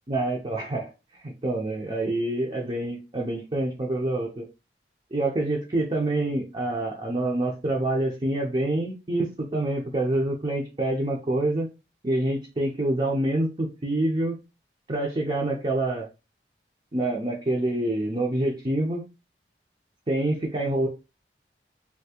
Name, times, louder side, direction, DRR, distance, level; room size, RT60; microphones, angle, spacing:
voice 1, 0.1-4.5 5.1-11.7 12.0-14.4 14.9-16.1 16.9-19.0 20.1-20.9, right 1 dB, 30° right, -1 dB, 0.5 m, -26 dB
3.4 x 2.6 x 2.8 m, 0.28 s
head